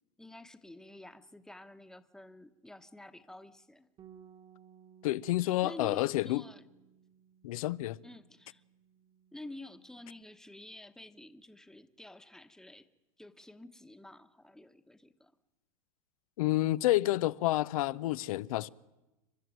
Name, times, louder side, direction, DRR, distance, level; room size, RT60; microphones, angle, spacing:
voice 1, 0.2-3.9 5.6-6.7 8.0-8.6 9.3-12.9 13.2-15.3, left 2 dB, 5° left, 1.1 m, -49 dB
Bass guitar, 4.0-10.2, right 8 dB, 35° right, 1.5 m, -60 dB
voice 2, 5.0-6.4 7.4-8.0 16.4-18.7, left 16 dB, 80° left, 0.7 m, -29 dB
29.0 x 12.5 x 9.3 m
supercardioid pair, 125°, 18 cm